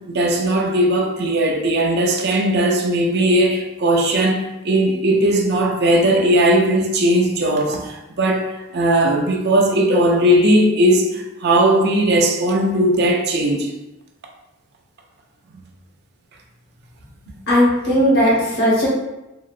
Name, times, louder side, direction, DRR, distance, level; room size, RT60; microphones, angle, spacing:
voice 1, 0.1-13.7, right 1 dB, 45° right, 1 dB, 0.4 m, -18 dB
voice 2, 17.5-18.9, equal, 50° left, -6 dB, 1.0 m, -16 dB
3.7 x 2.0 x 2.4 m, 0.95 s
head